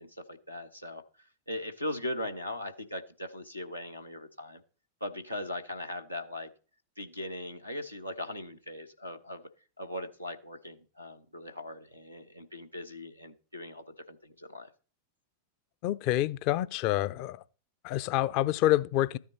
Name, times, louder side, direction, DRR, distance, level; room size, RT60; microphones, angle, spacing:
voice 1, 0.0-4.6 5.0-6.5 7.0-9.4 9.8-14.7, left 1 dB, 90° left, 1.1 m, -39 dB
voice 2, 15.8-17.4 17.8-19.2, left 14 dB, 45° left, 0.5 m, -27 dB
13.5 x 9.6 x 4.3 m
figure-of-eight pair, 90°, 0 cm